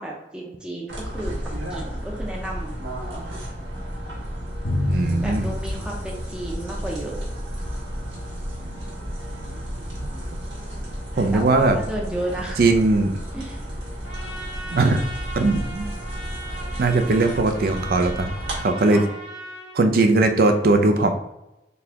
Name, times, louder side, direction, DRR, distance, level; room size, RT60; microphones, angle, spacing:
voice 1, 0.0-1.3 1.7-2.8 5.1-7.2 11.3-12.6 13.3-13.7 18.9-19.1, right 1 dB, 5° right, -3 dB, 0.6 m, -32 dB
sound 1, 0.9-18.6, equal, 70° right, 1.5 m, -32 dB
Drum, 4.6-7.0, left 1 dB, 55° left, 0.7 m, -28 dB
voice 2, 4.9-5.5 11.2-11.8 12.6-13.1 14.7-15.0 15.4-15.9 16.8-18.3 18.6-19.0 19.7-21.1, right 2 dB, 50° right, 6 dB, 0.4 m, -19 dB
Trumpet, 14.0-19.8, right 2 dB, 80° left, 1.4 m, -38 dB
4.0 x 3.4 x 2.8 m, 0.92 s
head